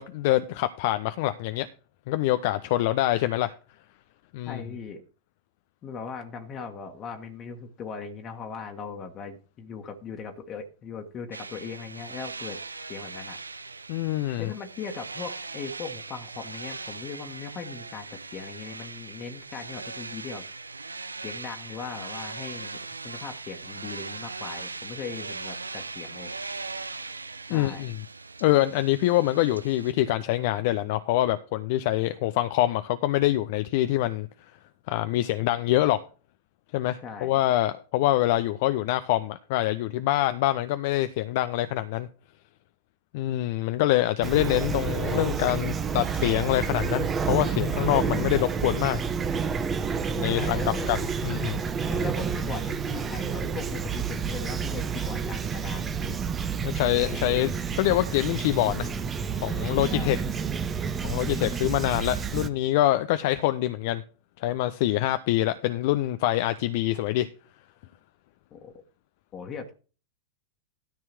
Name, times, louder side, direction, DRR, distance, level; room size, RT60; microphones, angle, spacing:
voice 1, 0.0-1.7 2.1-3.5 4.3-4.6 13.9-14.5 27.5-28.0 28.4-34.3 34.9-36.0 36.7-42.1 43.1-49.0 50.2-50.6 50.9-51.0 51.2-51.6 56.6-58.9 59.4-60.2 61.0-64.0 64.4-67.3, left 15 dB, 50° left, 0.6 m, -25 dB
voice 2, 4.5-5.0 5.8-12.6 12.9-13.4 14.4-20.4 21.2-22.8 23.0-26.3 27.5-27.9 37.0-37.4 50.3-50.9 51.8-56.2 59.9-60.2 68.5-68.7 69.3-69.7, left 5 dB, 30° left, 1.6 m, -39 dB
sound 1, 11.3-29.9, right 3 dB, 80° right, 0.5 m, -40 dB
Fowl / Chirp tweet, 44.2-62.5, right 6 dB, 20° right, 1.0 m, -29 dB
13.0 x 4.6 x 6.0 m
figure-of-eight pair, 90°, 0 cm